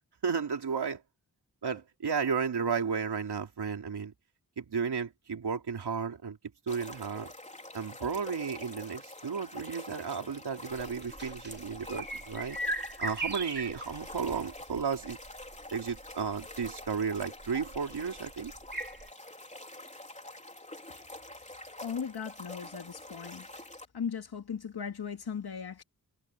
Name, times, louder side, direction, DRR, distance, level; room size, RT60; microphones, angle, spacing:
voice 1, 0.2-1.0 1.6-4.1 4.6-6.4 6.7-7.3 7.7-12.6 13.0-15.2 15.7-18.5, right 6 dB, 90° right, 3.2 m, -33 dB
sound 1, 6.7-23.8, left 1 dB, 20° left, 3.9 m, -46 dB
sound 2, 10.7-19.1, right 2 dB, 25° right, 3.5 m, -40 dB
voice 2, 21.8-23.4 23.9-25.8, left 7 dB, 75° left, 2.3 m, -37 dB
wide cardioid pair, 75°, 39 cm